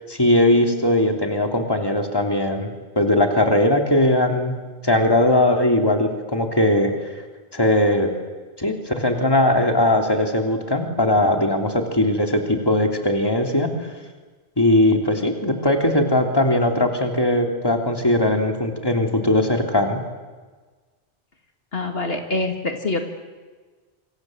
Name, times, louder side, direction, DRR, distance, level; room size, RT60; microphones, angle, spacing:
voice 1, 0.1-2.7 2.9-7.1 7.5-8.1 8.6-13.7 14.6-20.0, left 1 dB, 20° left, 3 dB, 3.2 m, -19 dB
voice 2, 21.7-23.0, left 2 dB, 70° left, 5 dB, 2.4 m, -25 dB
27.5 x 26.0 x 8.0 m, 1.4 s
omnidirectional pair, 1.1 m